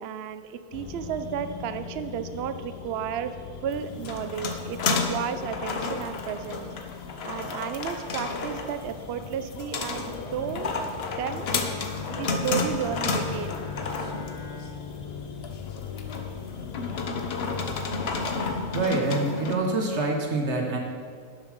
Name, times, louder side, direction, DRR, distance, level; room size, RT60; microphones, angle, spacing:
voice 1, 0.0-3.3 3.6-6.7 7.2-10.7 11.2-11.5 12.1-13.6, right 9 dB, 85° right, 10 dB, 0.5 m, -33 dB
sound 1, 0.7-18.9, left 8 dB, 75° left, 1.4 m, -40 dB
sound 2, 3.7-19.5, left 3 dB, 50° left, 0.8 m, -32 dB
Bowed string instrument, 11.6-16.5, left 4 dB, 20° left, 0.8 m, -42 dB
voice 2, 18.7-20.8, right 2 dB, 45° right, 1 dB, 1.6 m, -26 dB
11.5 x 7.0 x 5.2 m, 2.1 s
omnidirectional pair, 1.8 m